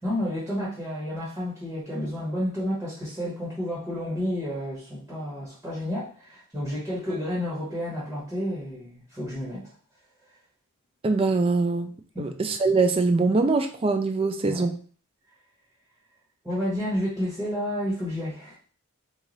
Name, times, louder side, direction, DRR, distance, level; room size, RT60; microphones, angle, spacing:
voice 1, 0.0-9.7 12.1-12.3 14.4-14.7 16.4-18.6, equal, 10° right, -8 dB, 1.3 m, -30 dB
voice 2, 11.0-14.8, right 3 dB, 25° right, 6 dB, 0.3 m, -23 dB
3.2 x 2.5 x 3.9 m, 0.42 s
head